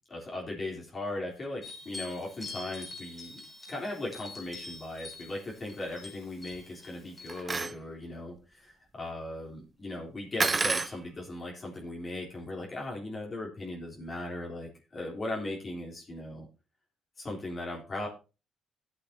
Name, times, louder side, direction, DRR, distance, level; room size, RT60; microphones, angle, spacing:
voice 1, 0.1-3.4 3.7-16.5 17.2-18.1, left 2 dB, 40° left, -2 dB, 3.5 m, -38 dB
sound 1, 1.6-7.4, left 3 dB, 20° left, 3.1 m, -45 dB
sound 2, 7.3-7.8 10.4-11.0, right 4 dB, 30° right, 0.5 m, -28 dB
15.5 x 8.3 x 2.8 m, 0.31 s
cardioid pair, 90°, 0 cm